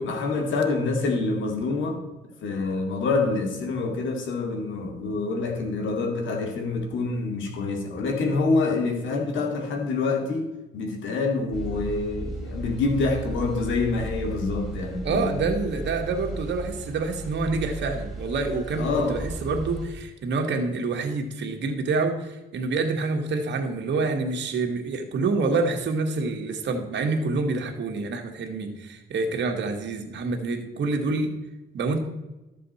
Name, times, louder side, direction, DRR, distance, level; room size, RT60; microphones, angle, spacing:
voice 1, 0.0-2.0 2.4-10.5 10.7-15.5 18.8-19.2, left 3 dB, 75° left, 3 dB, 2.2 m, -26 dB
sound 1, 11.5-19.8, right 2 dB, ahead, 3.0 m, -35 dB
voice 2, 15.0-31.3 31.7-32.0, right 3 dB, 65° right, 3 dB, 1.8 m, -27 dB
13.0 x 7.5 x 4.2 m, 1.0 s
cardioid pair, 90°, 20 cm